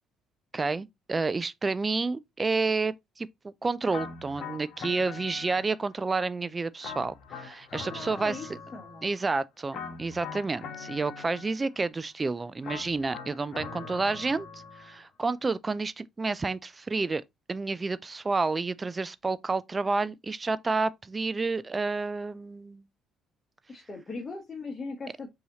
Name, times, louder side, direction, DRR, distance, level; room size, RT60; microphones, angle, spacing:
voice 1, 0.5-8.6 9.0-17.2 17.5-22.8, right 3 dB, 25° right, 0.4 m, -30 dB
sound 1, 3.9-6.0 6.8-9.2 9.7-11.8 12.6-15.0, left 5 dB, 55° left, 1.1 m, -42 dB
voice 2, 7.9-8.5 8.7-9.1 23.7-25.3, left 3 dB, 35° left, 1.1 m, -39 dB
5.4 x 2.8 x 2.9 m
hypercardioid pair, 50°, 0 cm